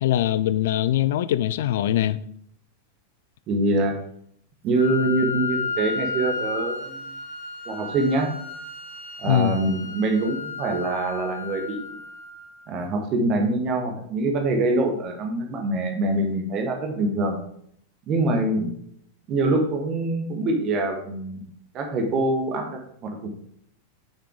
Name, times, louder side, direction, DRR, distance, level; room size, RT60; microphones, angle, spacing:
voice 1, 0.0-2.2 9.2-9.6, left 12 dB, 55° left, 0.4 m, -22 dB
voice 2, 3.5-3.9 4.6-7.1 7.7-8.3 9.2-12.0 12.7-17.4 18.1-18.7 19.3-21.4 21.7-23.3, right 2 dB, 35° right, 1.4 m, -24 dB
Wind instrument woodwind instrument, 4.7-12.7, left 4 dB, 85° right, 3.2 m, -33 dB
6.5 x 6.1 x 3.9 m
figure-of-eight pair, 90°, 0 cm